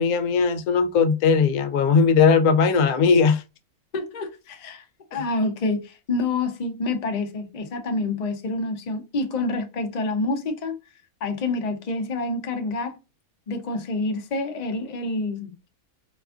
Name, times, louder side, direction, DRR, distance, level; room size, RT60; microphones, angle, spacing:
voice 1, 0.0-3.4, left 5 dB, 85° left, 1.1 m, -19 dB
voice 2, 3.9-4.8 5.1-10.8 11.2-13.0 13.5-15.5, left 2 dB, 40° left, 0.6 m, -27 dB
4.2 x 2.4 x 2.4 m
omnidirectional pair, 1.6 m